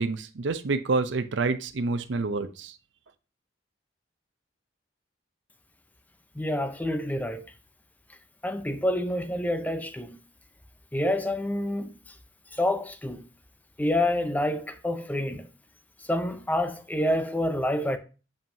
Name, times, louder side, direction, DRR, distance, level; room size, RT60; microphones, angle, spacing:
voice 1, 0.0-2.7, right 3 dB, 75° right, 0.6 m, -28 dB
voice 2, 6.4-7.4 8.4-10.2 10.9-11.9 12.5-13.3 13.8-15.5 16.1-18.0, left 1 dB, 10° left, 0.6 m, -27 dB
7.2 x 5.3 x 2.7 m
head